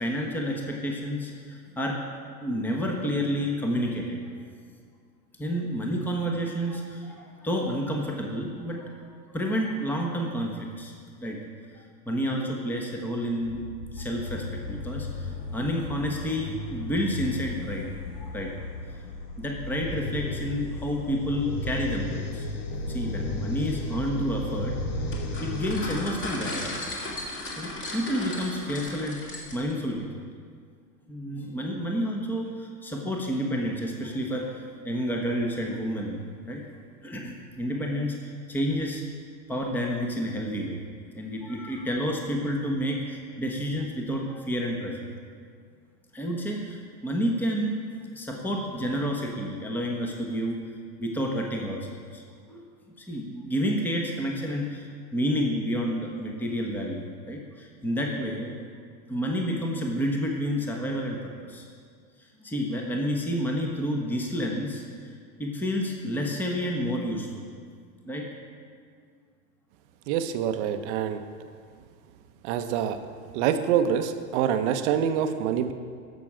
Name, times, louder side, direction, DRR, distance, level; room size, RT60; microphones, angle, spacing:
voice 1, 0.0-4.2 5.4-10.9 11.2-11.4 11.7-13.6 13.9-17.9 18.2-18.5 19.4-22.5 22.9-24.7 25.4-26.7 27.6-30.1 31.1-36.6 37.0-39.0 39.5-40.8 41.1-45.0 46.1-47.8 48.1-50.6 51.0-52.2 52.5-52.6 53.0-58.6 59.1-61.6 62.2-65.1 65.4-67.5 68.1-68.2, equal, 5° left, 0 dB, 1.1 m, -30 dB
sound 1, 13.4-26.0, left 2 dB, 85° left, 1.2 m, -34 dB
sound 2, 25.1-29.8, left 1 dB, 20° left, 2.3 m, -35 dB
voice 2, 70.1-71.2 72.4-73.0 73.3-75.7, right 8 dB, 45° right, 8 dB, 0.8 m, -25 dB
14.0 x 6.2 x 4.9 m, 2.1 s
hypercardioid pair, 120°, 49 cm